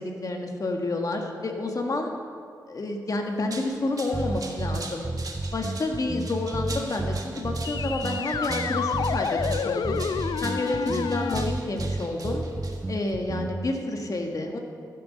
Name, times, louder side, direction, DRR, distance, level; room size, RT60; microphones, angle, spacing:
voice 1, 0.0-2.2 2.7-5.0 5.5-10.0 10.4-12.4 12.9-14.6, left 2 dB, 50° left, 2 dB, 1.7 m, -29 dB
sound 1, 3.3-13.1, right 3 dB, 55° right, 1.6 m, -42 dB
sound 2, 4.1-13.7, right 2 dB, 20° right, 0.4 m, -31 dB
sound 3, 7.6-11.4, left 7 dB, 70° left, 0.4 m, -29 dB
14.5 x 7.0 x 6.5 m, 2.3 s
cardioid pair, 60°, 7 cm